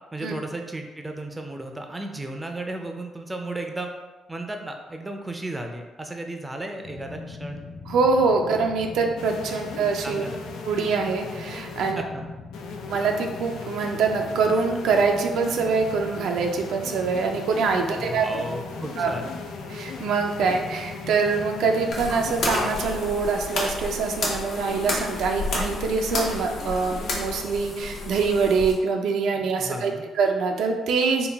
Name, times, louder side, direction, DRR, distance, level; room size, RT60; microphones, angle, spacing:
voice 1, 0.1-3.9 4.3-7.6 9.5-9.6 10.0-10.4 12.0-12.3 17.9-19.3 29.4-30.0, right 2 dB, 15° right, 3 dB, 0.4 m, -34 dB
sound 1, 6.8-22.9, left 3 dB, 35° left, 0.5 m, -41 dB
voice 2, 7.9-10.2 10.7-12.0 12.9-18.3 19.0-19.1 19.7-31.3, right 4 dB, 80° right, 3 dB, 0.4 m, -24 dB
sound 2, 9.2-11.9 12.5-27.4, left 4 dB, 90° left, 0.4 m, -39 dB
sound 3, 21.9-28.7, left 2 dB, 65° left, 0.9 m, -31 dB
3.9 x 2.3 x 3.4 m, 1.2 s
cardioid pair, 90°, 0 cm